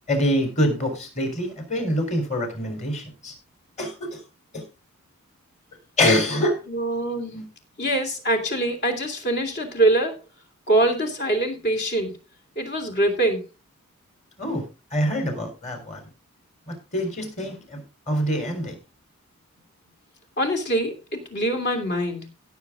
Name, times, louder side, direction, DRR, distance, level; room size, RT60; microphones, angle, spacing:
voice 1, 0.1-3.3 3.8-4.2 4.5-4.6 6.0-6.6 7.3-7.4 14.4-14.7 14.9-16.0 16.7-18.8, equal, 30° left, 5 dB, 3.9 m, -25 dB
voice 2, 6.7-7.3 7.8-10.2 10.7-12.2 12.6-13.5 20.4-22.3, right 1 dB, 50° left, 5 dB, 2.9 m, -24 dB
16.5 x 7.1 x 3.7 m, 0.28 s
head